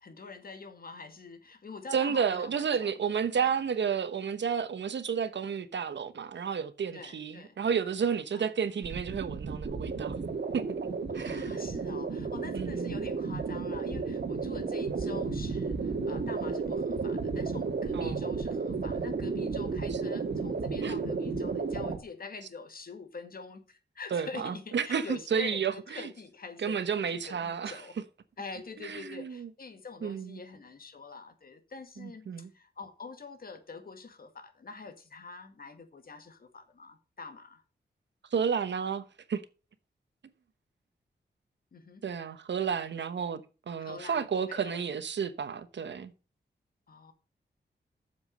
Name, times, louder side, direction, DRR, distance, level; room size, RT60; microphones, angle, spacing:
voice 1, 0.0-3.6 6.9-7.6 8.3-8.5 11.1-27.9 28.4-37.6 41.7-42.0 43.8-44.8 46.9-47.1, left 4 dB, 55° left, 1.9 m, -45 dB
voice 2, 1.9-10.1 10.5-10.6 11.1-11.6 12.5-13.1 17.9-18.3 19.9-20.0 20.8-21.0 24.1-26.1 26.6-27.8 28.8-29.5 30.0-30.4 32.0-32.5 38.3-39.0 39.3-39.4 42.0-46.1, right 7 dB, 85° right, 1.1 m, -31 dB
sound 1, 8.8-22.0, right 4 dB, 65° right, 2.0 m, -33 dB
8.0 x 7.2 x 6.5 m
wide cardioid pair, 125°, 18 cm